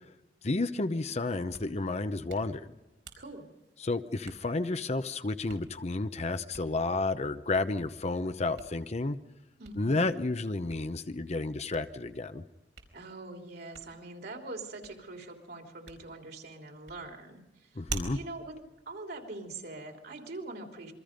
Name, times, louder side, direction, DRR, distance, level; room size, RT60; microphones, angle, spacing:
voice 1, 0.4-2.7 3.8-9.2 9.8-12.4 17.8-18.2, left 2 dB, 35° left, 10 dB, 0.8 m, -31 dB
Hands, 1.3-19.8, right 4 dB, 80° right, 4.4 m, -50 dB
voice 2, 3.2-3.5 9.6-10.0 12.9-18.5 18.8-20.9, right 2 dB, 60° right, 3 dB, 3.2 m, -43 dB
27.5 x 23.5 x 5.2 m, 1.0 s
head